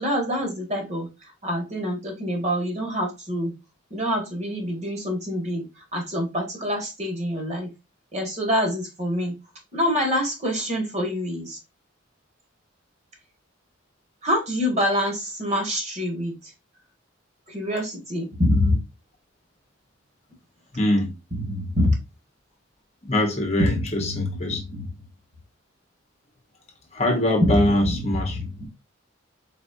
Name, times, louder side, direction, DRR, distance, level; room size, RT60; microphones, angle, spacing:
voice 1, 0.0-3.5 3.9-7.7 8.1-9.3 9.7-11.6 14.2-16.5 17.5-18.8 21.3-22.0 23.6-25.0 27.5-28.6, equal, 35° right, 1.9 m, -26 dB
voice 2, 20.7-21.1 23.0-24.6 26.9-28.4, left 1 dB, 35° left, 1.1 m, -23 dB
4.2 x 4.2 x 2.6 m
head